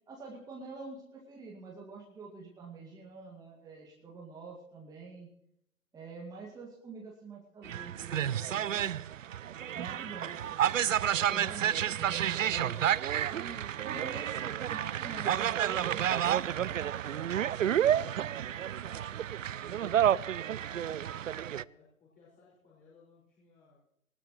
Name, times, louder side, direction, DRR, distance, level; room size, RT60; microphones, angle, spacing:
voice 1, 0.1-5.3 5.9-8.9 9.7-12.8 13.3-16.8, right 4 dB, 10° right, -2 dB, 2.1 m, -46 dB
sound 1, 7.6-21.6, right 10 dB, 60° right, 0.5 m, -30 dB
voice 2, 9.9-10.4 11.5-11.8 17.9-20.1 20.6-23.8, left 3 dB, 20° left, -7 dB, 5.4 m, -60 dB
19.5 x 19.0 x 3.1 m, 0.75 s
figure-of-eight pair, 125°, 44 cm